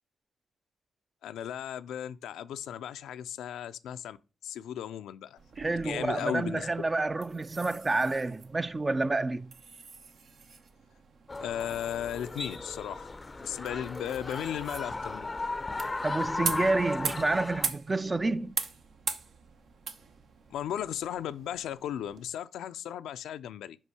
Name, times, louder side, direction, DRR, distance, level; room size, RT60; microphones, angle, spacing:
voice 1, 1.2-4.2 4.4-6.7 11.4-15.3 20.5-23.8, left 10 dB, 85° left, 0.4 m, -36 dB
sound 1, 5.4-22.2, right 5 dB, 65° right, 0.8 m, -42 dB
voice 2, 5.6-9.5 16.0-18.6, right 2 dB, 30° right, 0.4 m, -29 dB
sound 2, 11.3-17.7, left 3 dB, 30° left, 0.5 m, -36 dB
5.4 x 5.2 x 4.8 m
cardioid pair, 60°, 0 cm